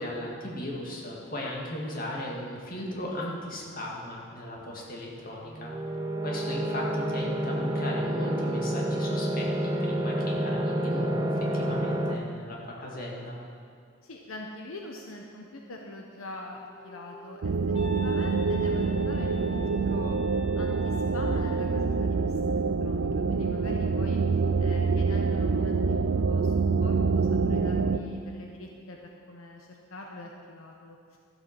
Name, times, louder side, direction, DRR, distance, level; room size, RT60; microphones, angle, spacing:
voice 1, 0.0-5.7 6.2-11.3 11.5-13.4, left 1 dB, 45° left, -3 dB, 2.1 m, -37 dB
sound 1, 5.5-12.2, right 1 dB, 15° right, 0.6 m, -29 dB
voice 2, 14.0-17.5 17.9-20.2 20.6-26.5 26.8-31.2, left 2 dB, 80° left, 1 dB, 1.0 m, -43 dB
Wind instrument woodwind instrument, 16.3-21.8, equal, 25° left, 1.0 m, -44 dB
sound 2, 17.4-28.0, right 4 dB, 75° right, 0.5 m, -26 dB
13.0 x 7.8 x 6.0 m, 2.3 s
head